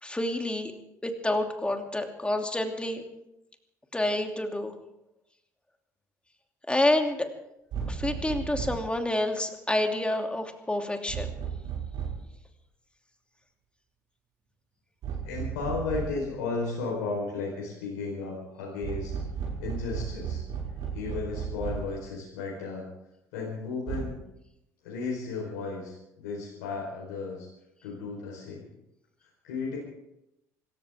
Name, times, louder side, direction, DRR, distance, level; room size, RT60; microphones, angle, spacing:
voice 1, 0.0-0.7 1.0-3.0 3.9-4.7 6.7-7.3 7.9-11.3, left 1 dB, 10° left, 4 dB, 2.8 m, -28 dB
sound 1, 7.7-8.9 11.1-12.3 15.0-16.3 18.8-22.0 23.9-24.0, right 7 dB, 60° right, 6.0 m, -34 dB
voice 2, 15.2-19.2 19.6-20.4 20.9-22.8 23.3-24.2 24.8-27.5 27.8-28.7 29.4-29.8, left 4 dB, 75° left, -3 dB, 4.3 m, -34 dB
26.0 x 14.0 x 3.7 m, 0.86 s
hypercardioid pair, 55°, 9 cm